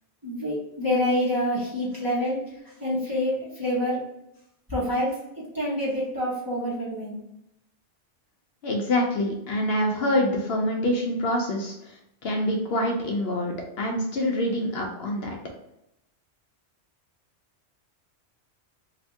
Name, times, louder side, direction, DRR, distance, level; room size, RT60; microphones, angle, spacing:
voice 1, 0.2-2.5 2.8-4.1 4.7-7.2, left 1 dB, 20° right, -7 dB, 1.0 m, -27 dB
voice 2, 8.6-15.4, left 1 dB, 65° left, 1 dB, 0.8 m, -26 dB
2.9 x 2.6 x 3.4 m, 0.83 s
omnidirectional pair, 1.2 m